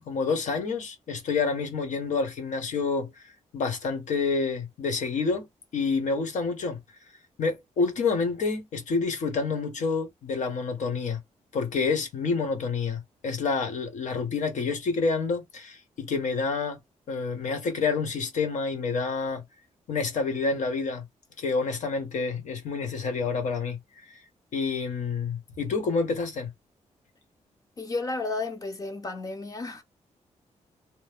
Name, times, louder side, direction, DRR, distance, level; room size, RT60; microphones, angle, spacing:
voice 1, 0.1-3.1 3.5-5.5 5.7-6.8 7.4-11.2 11.5-16.8 17.1-19.4 19.9-21.0 21.4-23.8 24.1-24.2 24.5-26.5, left 4 dB, 85° left, 1.3 m, -28 dB
voice 2, 27.8-29.8, left 3 dB, 30° left, 0.8 m, -32 dB
3.1 x 2.1 x 3.5 m
wide cardioid pair, 150°, 12 cm